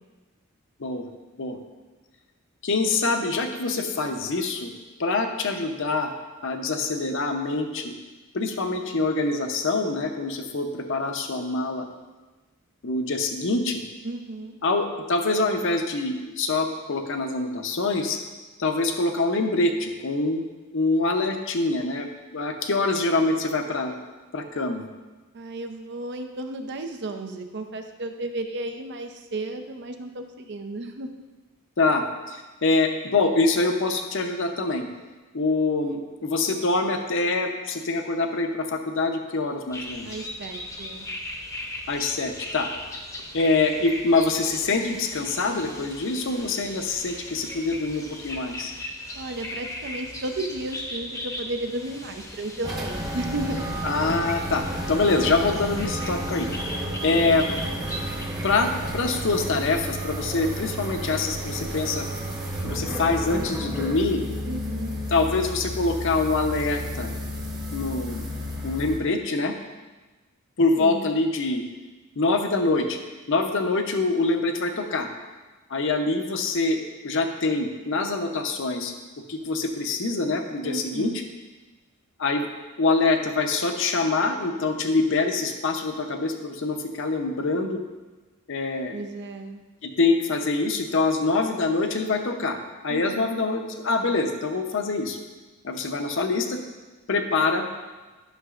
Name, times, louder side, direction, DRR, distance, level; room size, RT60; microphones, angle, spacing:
voice 1, 2.6-4.7 5.0-6.1 6.4-7.9 8.3-11.8 12.8-13.8 14.6-18.2 18.6-20.4 20.7-24.0 24.3-24.8 31.8-34.9 35.3-40.2 41.9-42.7 43.3-48.7 53.8-56.5 57.0-57.5 58.4-62.1 62.6-64.2 65.1-67.1 67.7-68.3 68.6-69.5 70.6-71.6 72.2-73.0 73.3-75.1 75.7-76.8 77.0-78.9 79.3-81.2 82.2-82.5 82.8-87.8 88.5-89.0 89.8-95.2 95.6-96.6 97.1-97.7, left 3 dB, 60° left, 5 dB, 0.7 m, -25 dB
voice 2, 14.0-14.6 25.3-31.1 40.1-41.1 49.1-53.6 64.5-65.0 70.8-71.1 80.6-81.2 88.9-89.6 92.9-93.4, right 2 dB, 55° right, 6 dB, 0.6 m, -33 dB
sound 1, 39.7-58.3, left 1 dB, 15° left, 0.8 m, -38 dB
sound 2, 52.6-69.0, equal, 20° right, 1.0 m, -32 dB
11.5 x 6.0 x 2.5 m, 1.2 s
head